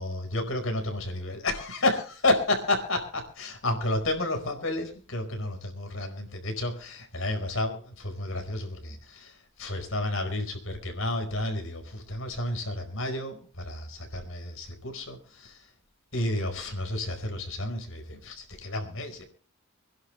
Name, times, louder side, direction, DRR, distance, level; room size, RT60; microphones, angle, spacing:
voice 1, 0.0-15.7 16.1-19.2, left 1 dB, 70° left, 5 dB, 4.8 m, -31 dB
26.0 x 11.0 x 3.3 m, 0.41 s
head